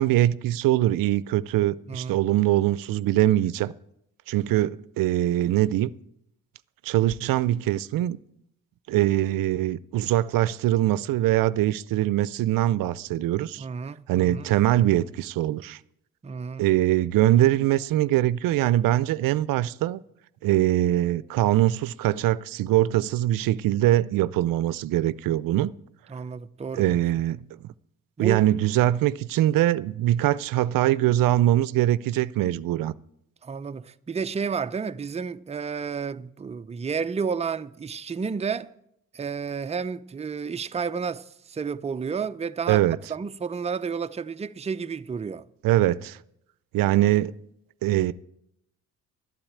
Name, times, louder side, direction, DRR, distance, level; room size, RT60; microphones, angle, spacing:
voice 1, 0.0-3.7 4.3-5.9 6.8-8.2 8.9-13.7 14.1-15.8 16.6-20.0 20.4-25.7 26.7-27.4 27.6-27.7 28.2-32.9 42.7-43.0 45.6-46.2 46.7-47.3 47.8-48.1, right 14 dB, 75° right, 0.6 m, -22 dB
voice 2, 1.9-2.2 13.6-14.5 16.2-16.6 26.1-27.0 28.2-28.5 33.4-38.7 39.1-42.8 43.1-45.4, right 5 dB, 20° right, 0.5 m, -31 dB
12.5 x 8.8 x 8.6 m
supercardioid pair, 70°, 34 cm